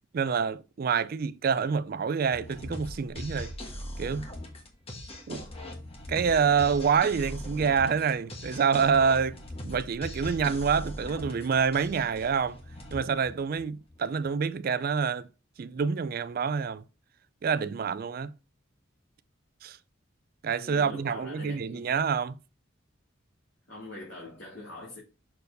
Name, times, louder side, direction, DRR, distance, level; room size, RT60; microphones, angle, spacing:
voice 1, 0.1-3.5 4.0-4.3 5.3-5.4 6.1-9.4 9.6-12.6 12.9-15.3 15.6-16.8 17.4-18.3 19.6-19.8 20.4-22.4, right 6 dB, 50° right, 0.3 m, -27 dB
sound 1, 2.3-14.0, left 1 dB, 30° left, 1.4 m, -41 dB
voice 2, 20.5-21.9 23.7-25.0, left 1 dB, 75° left, 2.7 m, -43 dB
6.7 x 4.6 x 3.9 m
head